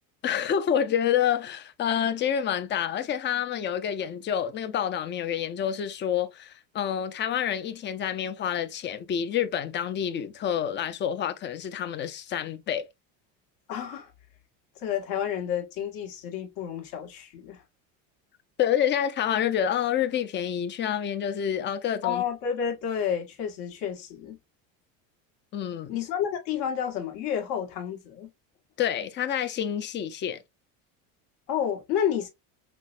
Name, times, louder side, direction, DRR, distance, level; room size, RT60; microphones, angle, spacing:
voice 1, 0.2-12.9 18.6-22.2 25.5-26.0 28.8-30.4, left 9 dB, 30° left, 0.4 m, -28 dB
voice 2, 13.7-14.1 14.7-17.6 22.0-24.4 25.9-28.3 31.5-32.3, left 8 dB, 70° left, 1.5 m, -30 dB
5.8 x 2.1 x 2.4 m
cardioid pair, 125°, 40 cm